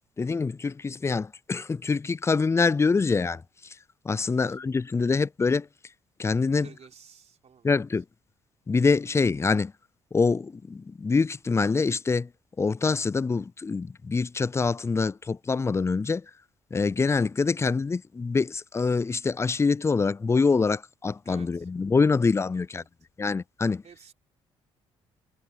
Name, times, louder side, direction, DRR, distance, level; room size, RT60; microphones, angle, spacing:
voice 1, 0.2-3.4 4.0-5.7 6.2-6.7 7.6-8.0 8.7-9.7 10.1-12.3 12.6-16.2 16.7-22.8 23.2-23.8, left 4 dB, 20° left, 0.3 m, -25 dB
voice 2, 4.2-4.6 6.6-8.0 21.2-21.7 22.5-22.9 23.8-24.1, right 7 dB, 50° right, 3.6 m, -53 dB
hypercardioid pair, 55°, 14 cm